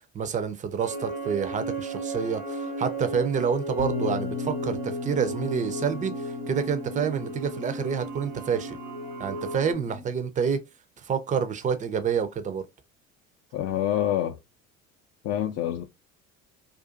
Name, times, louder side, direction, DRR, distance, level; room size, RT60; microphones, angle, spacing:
voice 1, 0.1-8.8 9.2-10.6 11.0-12.6, right 7 dB, 20° right, 0.4 m, -28 dB
sound 1, 0.8-9.7, right 2 dB, 85° right, 1.1 m, -35 dB
Bass guitar, 3.8-10.0, left 6 dB, 65° left, 0.8 m, -37 dB
voice 2, 13.5-14.4 15.2-15.8, left 11 dB, 40° left, 0.4 m, -26 dB
2.4 x 2.4 x 2.4 m
hypercardioid pair, 60°, 39 cm